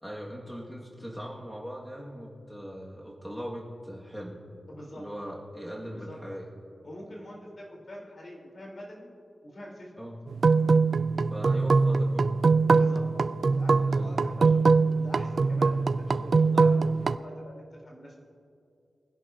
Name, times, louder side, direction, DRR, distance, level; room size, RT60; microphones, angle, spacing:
voice 1, 0.0-4.4 5.0-6.5 10.0-10.2 11.3-12.3 13.9-14.3, equal, 5° left, -4 dB, 1.9 m, -40 dB
voice 2, 4.7-5.0 5.9-6.2 6.8-9.1 9.4-9.9 12.7-13.1 13.4-18.2, equal, 50° left, -3 dB, 3.8 m, -45 dB
sound 1, 10.3-17.2, right 4 dB, 60° right, 0.4 m, -23 dB
23.5 x 11.0 x 2.8 m, 2.5 s
wide cardioid pair, 85°, 0 cm